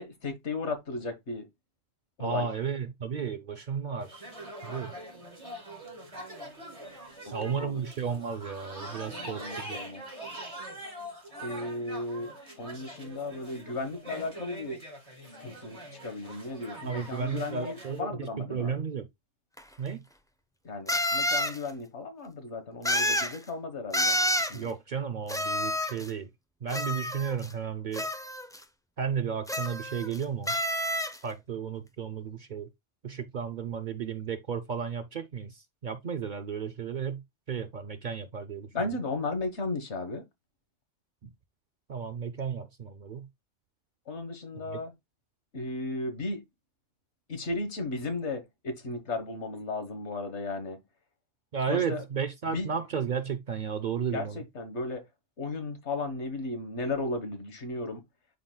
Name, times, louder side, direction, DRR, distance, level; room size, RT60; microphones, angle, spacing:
voice 1, 0.0-1.5 2.2-2.5 7.2-7.3 7.6-7.8 9.2-10.0 11.4-14.8 15.4-18.8 20.6-24.7 38.7-40.2 44.1-44.9 45.5-46.4 47.3-50.8 51.7-52.0 52.5-52.7 54.1-55.0 55.4-58.0, left 2 dB, 75° left, 1.6 m, -35 dB
voice 2, 2.2-4.3 4.6-4.9 7.3-9.8 16.8-19.1 19.8-20.0 24.5-26.3 26.6-28.1 29.0-30.5 31.2-32.7 33.0-37.2 37.5-38.7 41.2-41.3 41.9-43.3 44.5-44.8 51.5-54.4, right 6 dB, 55° right, 0.6 m, -33 dB
sound 1, 4.0-18.0, right 1 dB, 30° right, 2.7 m, -43 dB
spanish party noisemaker, 19.6-19.7 20.9-21.6 22.8-23.4 23.9-24.6 25.3-26.1 26.7-27.5 27.9-28.6 29.5-30.2 30.5-31.2, left 1 dB, 5° left, 0.4 m, -29 dB
11.0 x 3.9 x 2.2 m
omnidirectional pair, 1.2 m